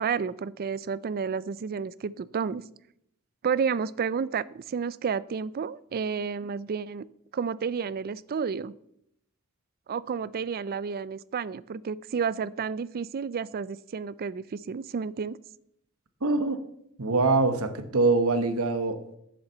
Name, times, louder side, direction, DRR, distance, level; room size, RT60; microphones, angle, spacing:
voice 1, 0.0-2.6 3.4-7.1 7.3-8.7 9.9-15.4, right 6 dB, 45° right, 20 dB, 0.4 m, -31 dB
voice 2, 16.2-16.6 17.0-19.2, right 3 dB, 70° right, 10 dB, 1.0 m, -24 dB
7.5 x 7.1 x 7.8 m, 0.76 s
head